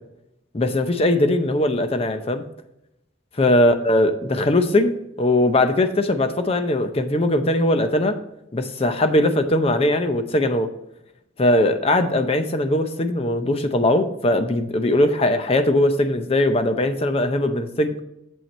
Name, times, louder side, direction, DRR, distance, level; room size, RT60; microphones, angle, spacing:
voice 1, 0.5-2.4 3.4-8.2 8.5-10.7 11.4-18.0, left 1 dB, 30° left, 9 dB, 0.6 m, -20 dB
7.4 x 5.6 x 4.2 m, 0.84 s
head